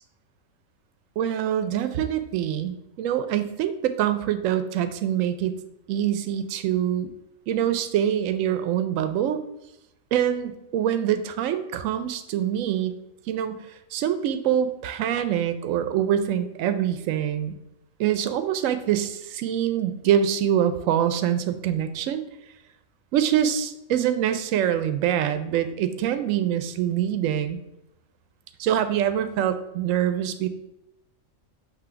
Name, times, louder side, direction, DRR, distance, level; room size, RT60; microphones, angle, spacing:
voice 1, 1.2-5.5 5.9-7.1 7.5-9.4 10.1-12.9 13.3-13.6 13.9-17.5 18.0-22.2 23.1-27.6 28.6-30.5, right 10 dB, 75° right, 10 dB, 1.0 m, -25 dB
6.1 x 3.1 x 5.7 m, 0.86 s
omnidirectional pair, 1.4 m